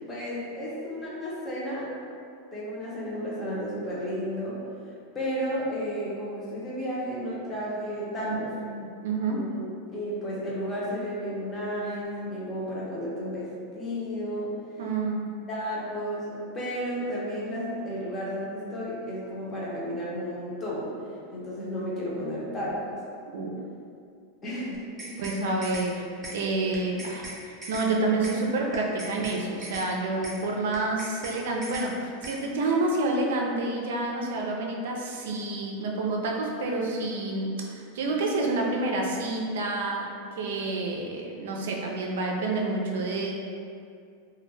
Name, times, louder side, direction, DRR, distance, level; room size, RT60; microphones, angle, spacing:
voice 1, 0.1-1.9 2.5-4.6 5.1-8.5 9.3-14.5 15.5-20.9 21.3-23.0 24.4-25.3, equal, 25° left, -6 dB, 0.7 m, -33 dB
voice 2, 8.2-9.5 14.8-15.3 23.3-23.6 25.2-26.1 26.3-40.1 40.4-43.3, right 2 dB, 80° right, 0 dB, 0.4 m, -28 dB
sound 1, 24.7-25.4 25.6-25.9 26.2-26.4 26.7-27.4 27.6-27.9 28.2-28.4 28.7-29.4 29.6-29.9 30.2-30.4 30.7-31.4 31.6-31.9 32.2-32.4, right 2 dB, 15° right, 0.6 m, -39 dB
2.2 x 2.1 x 3.2 m, 2.3 s
supercardioid pair, 135°, 0 cm